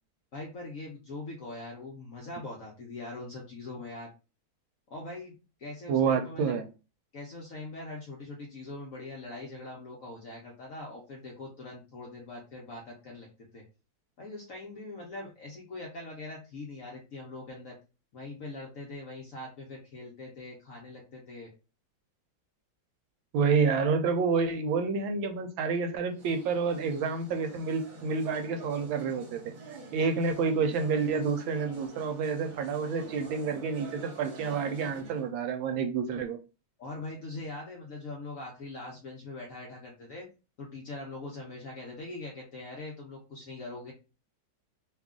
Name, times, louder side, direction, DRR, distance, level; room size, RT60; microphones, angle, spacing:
voice 1, 0.3-4.1 4.9-6.6 7.1-13.6 14.2-17.8 18.1-21.5 36.8-40.3 40.6-43.9, left 2 dB, 60° left, 0.9 m, -42 dB
voice 2, 5.9-6.6 23.3-29.4 29.9-36.4, right 5 dB, 80° right, 1.3 m, -29 dB
sound 1, 26.1-35.3, right 3 dB, 50° right, 1.3 m, -48 dB
3.2 x 2.3 x 3.6 m
omnidirectional pair, 2.2 m